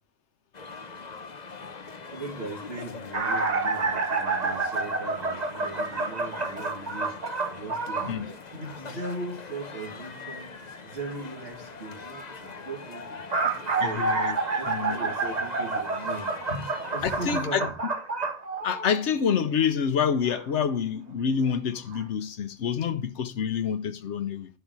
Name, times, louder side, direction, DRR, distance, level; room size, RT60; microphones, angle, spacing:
sound 1, 0.5-17.4, left 4 dB, 40° left, 1.0 m, -42 dB
voice 1, 2.1-7.1 7.5-10.5 10.8-14.1 14.5-17.7, right 2 dB, 65° right, 2.7 m, -39 dB
sound 2, 3.1-8.2 13.0-19.2 20.3-20.4 21.5-21.6 21.9-22.0, right 3 dB, 40° right, 1.1 m, -29 dB
voice 2, 13.8-14.4 14.7-15.1 17.0-17.6 18.6-24.5, left 7 dB, 90° left, 1.1 m, -27 dB
11.0 x 5.7 x 4.7 m
omnidirectional pair, 1.1 m